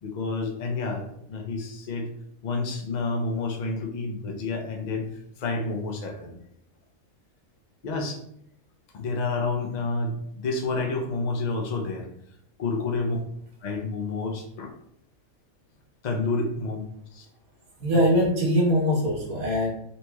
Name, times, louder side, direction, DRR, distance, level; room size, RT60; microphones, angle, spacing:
voice 1, 0.0-2.1 2.4-5.1 5.4-6.4 7.8-8.2 8.9-12.1 12.6-13.2 13.6-14.7 16.0-16.9 17.1-17.3, left 3 dB, 85° left, 1 dB, 0.3 m, -29 dB
voice 2, 17.8-19.7, equal, 85° right, -3 dB, 1.6 m, -22 dB
4.0 x 3.0 x 2.2 m, 0.73 s
omnidirectional pair, 1.5 m